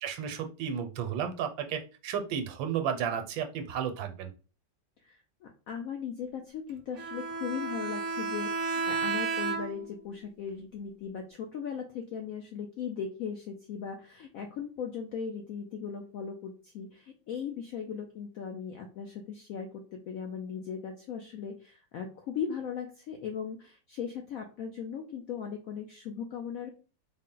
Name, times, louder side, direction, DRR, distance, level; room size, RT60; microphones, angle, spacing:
voice 1, 0.0-4.3, right 8 dB, 85° right, 6 dB, 1.4 m, -33 dB
voice 2, 5.0-26.7, left 7 dB, 85° left, 3 dB, 0.7 m, -38 dB
Bowed string instrument, 7.0-10.0, right 4 dB, 65° right, 0.7 m, -32 dB
4.0 x 2.1 x 3.7 m, 0.36 s
omnidirectional pair, 2.0 m